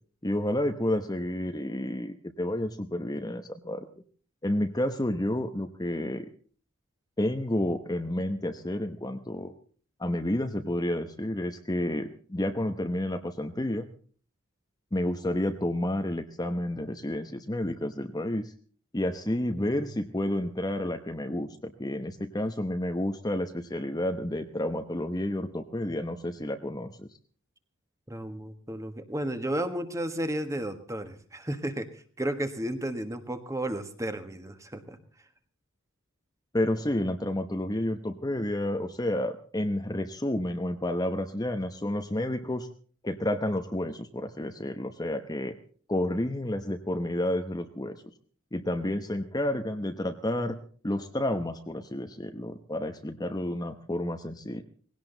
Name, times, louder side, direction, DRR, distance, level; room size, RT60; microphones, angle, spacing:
voice 1, 0.2-3.9 4.4-6.3 7.2-9.5 10.0-13.9 14.9-18.5 18.9-27.1 36.5-42.7 43.0-45.6 45.9-48.0 48.5-50.6 50.8-54.6, left 1 dB, 20° left, 7 dB, 0.9 m, -30 dB
voice 2, 19.3-19.8 28.1-31.9 32.2-35.0, right 1 dB, 15° right, 8 dB, 1.5 m, -33 dB
19.5 x 17.0 x 3.9 m, 0.43 s
head